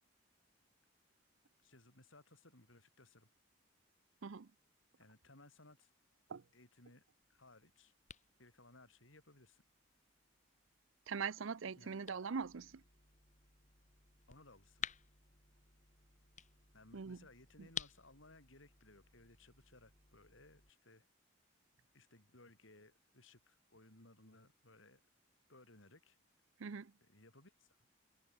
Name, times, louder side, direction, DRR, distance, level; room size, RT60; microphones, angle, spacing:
voice 1, 1.6-3.3 5.0-5.9 6.5-7.0 7.3-7.9 8.4-9.6 11.8-12.1 14.3-14.9 16.7-21.1 21.9-25.0 25.5-26.2 27.0-27.7, left 2 dB, 70° left, 4.9 m, -62 dB
sound 1, 7.2-20.7, left 7 dB, 35° left, 7.5 m, -54 dB
voice 2, 11.1-12.8 16.9-17.3 17.6-17.7 26.6-26.9, right 5 dB, 75° right, 0.6 m, -42 dB
head